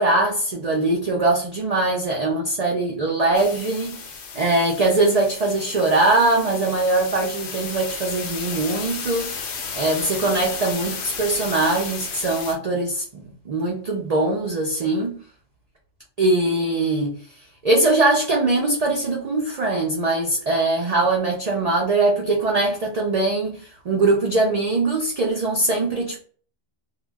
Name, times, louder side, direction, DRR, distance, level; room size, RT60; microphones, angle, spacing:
voice 1, 0.0-3.9 4.3-9.4 9.8-15.2 16.2-17.2 17.6-23.6 23.8-26.2, right 2 dB, 80° right, 0.3 m, -21 dB
sound 1, 3.3-12.6, left 5 dB, 65° left, 0.8 m, -34 dB
2.2 x 2.0 x 3.4 m
omnidirectional pair, 1.3 m